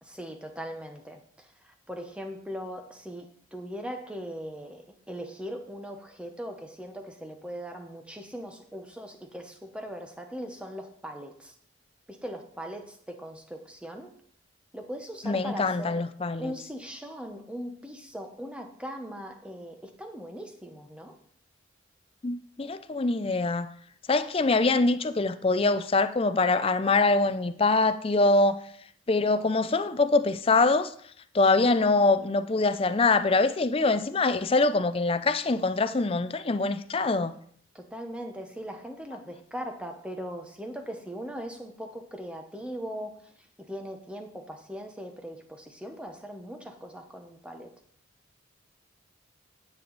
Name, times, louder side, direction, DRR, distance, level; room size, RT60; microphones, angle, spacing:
voice 1, 0.0-11.5 12.1-14.1 14.7-16.0 16.4-21.2 22.6-22.7 37.7-47.7, equal, 5° right, 1.0 m, -40 dB
voice 2, 15.2-16.5 22.2-23.7 24.1-28.6 29.1-30.9 31.3-37.3, left 3 dB, 30° left, 0.5 m, -24 dB
9.7 x 7.7 x 4.0 m
head